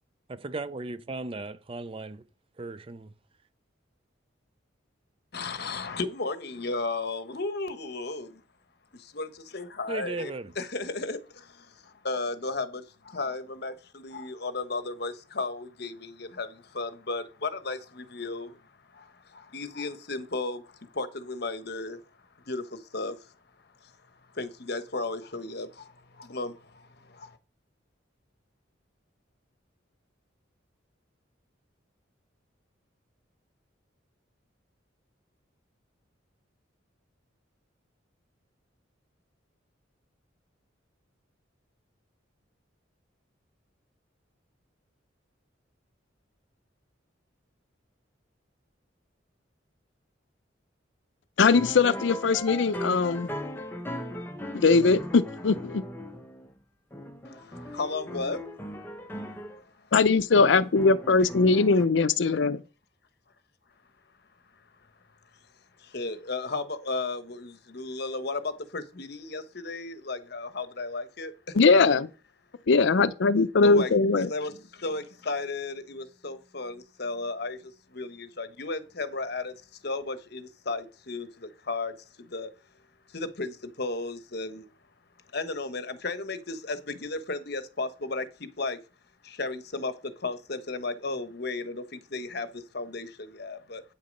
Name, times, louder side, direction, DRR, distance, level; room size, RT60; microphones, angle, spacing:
voice 1, 0.3-2.2 2.6-3.1 9.9-10.5, right 3 dB, 30° right, 0.4 m, -36 dB
voice 2, 5.3-8.4 8.9-22.0 22.4-23.3 23.8-23.9 24.3-27.4 57.2-58.4 59.2-59.9 65.8-71.7 73.6-82.5 83.1-84.7 85.3-88.8 89.2-93.8, left 3 dB, 55° left, 1.1 m, -35 dB
voice 3, 51.4-53.3 54.5-55.8 59.9-62.6 71.5-72.1 72.7-74.3, left 4 dB, 75° left, 0.5 m, -21 dB
sound 1, 51.5-56.6 56.9-59.6 60.4-61.9, equal, 10° left, 1.0 m, -38 dB
8.5 x 6.6 x 5.3 m
head